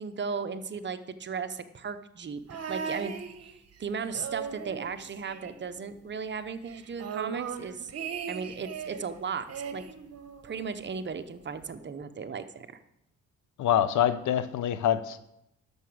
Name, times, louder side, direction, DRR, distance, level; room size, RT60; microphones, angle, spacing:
voice 1, 0.0-3.1 3.8-7.9 8.3-9.9 10.4-12.7, right 5 dB, 35° right, 10 dB, 0.9 m, -36 dB
sound 1, 2.5-3.8 4.1-6.0 6.3-6.4 6.7-9.1 9.5-10.7 11.6-11.7, right 7 dB, 55° right, 1.2 m, -38 dB
voice 2, 13.6-15.2, left 10 dB, 75° left, 14 dB, 0.8 m, -25 dB
11.0 x 7.0 x 6.3 m, 0.81 s
cardioid pair, 90°, 30 cm